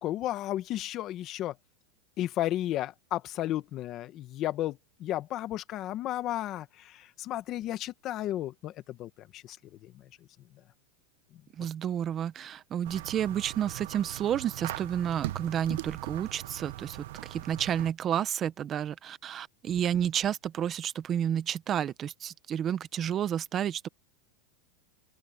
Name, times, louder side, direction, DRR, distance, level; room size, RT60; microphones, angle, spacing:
voice 1, 0.0-1.5 2.2-9.6 9.8-9.9, left 13 dB, 35° left, 1.3 m, -33 dB
voice 2, 11.6-17.0 17.3-23.9, right 9 dB, 25° right, 0.8 m, -31 dB
sound 1, 12.8-17.9, right 16 dB, 70° right, 0.8 m, -40 dB
open air
supercardioid pair, 150°, 0 cm